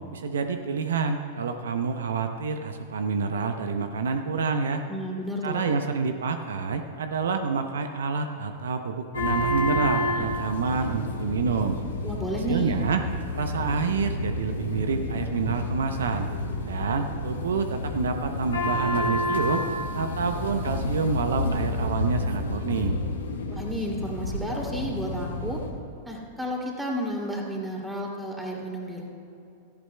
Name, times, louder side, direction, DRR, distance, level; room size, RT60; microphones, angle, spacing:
voice 1, 0.1-4.8 5.4-11.8 12.5-13.0 13.3-16.3 16.6-19.6 19.9-22.9, right 5 dB, 75° right, 7 dB, 0.6 m, -28 dB
voice 2, 4.9-5.8 12.0-12.8 23.5-25.6 26.0-29.1, equal, 5° right, -2 dB, 2.7 m, -32 dB
sound 1, 9.1-25.7, left 2 dB, 80° left, 1.5 m, -30 dB
16.5 x 14.0 x 2.2 m, 2.7 s
hypercardioid pair, 100°, 0 cm